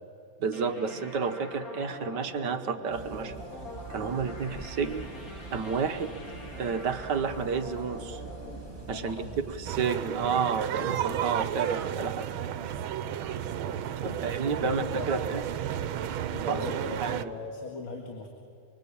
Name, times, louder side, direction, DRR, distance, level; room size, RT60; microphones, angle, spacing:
voice 1, 0.4-3.3 3.9-5.1 5.5-6.2 6.6-8.2 8.9-9.2 9.5-12.3 14.0-15.4 16.5-16.6 17.0-17.3, right 5 dB, 60° right, 8 dB, 1.6 m, -30 dB
sound 1, 0.5-9.9, left 1 dB, 40° left, 4.5 m, -44 dB
sound 2, 2.9-9.9, right 3 dB, 10° right, 2.1 m, -44 dB
voice 2, 8.9-9.4 13.9-15.2 16.3-18.3, left 3 dB, 75° left, 2 dB, 2.8 m, -39 dB
sound 3, 9.7-17.3, right 10 dB, 80° right, 1.6 m, -32 dB
24.5 x 24.5 x 8.6 m, 2.5 s
omnidirectional pair, 2.2 m